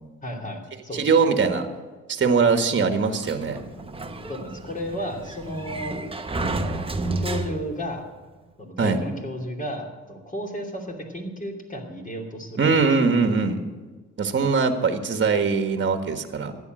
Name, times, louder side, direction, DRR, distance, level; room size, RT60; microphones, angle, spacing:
voice 1, 0.2-1.1 4.3-5.9 6.4-6.9 7.2-8.0 8.6-12.7, equal, 25° left, 2 dB, 2.9 m, -33 dB
voice 2, 0.9-1.7 2.1-3.6 8.8-9.0 12.6-13.6 14.2-16.5, right 5 dB, 40° right, 7 dB, 1.6 m, -21 dB
Sliding door, 3.2-7.9, right 2 dB, 20° right, 1.1 m, -31 dB
13.5 x 9.4 x 7.7 m, 1.4 s
cardioid pair, 90°, 30 cm